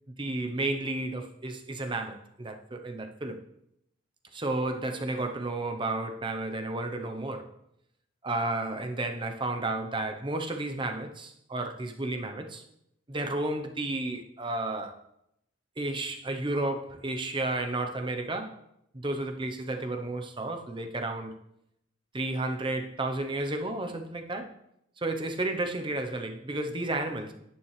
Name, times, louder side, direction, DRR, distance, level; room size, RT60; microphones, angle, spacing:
voice 1, 0.1-3.4 4.3-7.5 8.2-12.6 13.1-15.0 15.8-18.6 18.9-21.3 22.1-24.5 25.0-27.3, right 2 dB, 25° right, 6 dB, 0.9 m, -32 dB
10.5 x 9.3 x 3.3 m, 0.78 s
head